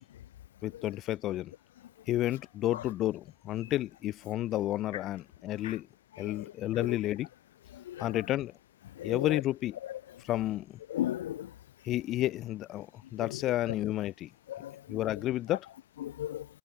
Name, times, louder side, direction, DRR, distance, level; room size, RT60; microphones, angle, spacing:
voice 1, 0.6-1.5 2.1-5.9 6.2-7.3 8.0-8.5 9.0-9.8 10.2-10.8 11.8-14.3 14.9-15.7, left 14 dB, 50° left, 2.0 m, -31 dB
voice 2, 10.9-11.5 14.5-15.0 16.0-16.5, left 12 dB, 80° left, 2.5 m, -35 dB
hypercardioid pair, 75°, 0 cm